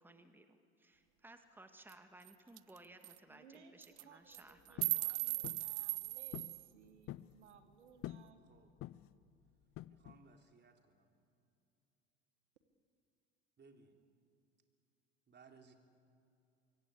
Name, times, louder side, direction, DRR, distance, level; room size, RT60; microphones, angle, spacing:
voice 1, 0.0-4.9, right 2 dB, 5° right, 7 dB, 1.9 m, -59 dB
sound 1, 1.9-2.0 2.3-2.4 2.6-2.8 3.0-3.2 3.8-4.0 4.3-6.7, right 24 dB, 50° right, 0.5 m, -38 dB
voice 2, 3.3-8.4, right 6 dB, 80° right, 9 dB, 1.7 m, -62 dB
sound 2, 4.8-5.0 5.4-5.7 6.3-6.6 6.9-7.3 8.0-8.3 8.8-9.2 9.8-10.2, left 14 dB, 40° left, 0.7 m, -47 dB
voice 3, 9.9-11.1 13.6-13.9 15.3-15.8, right 4 dB, 30° right, 4 dB, 3.6 m, -62 dB
25.0 x 22.5 x 8.4 m, 2.7 s
hypercardioid pair, 75°, 34 cm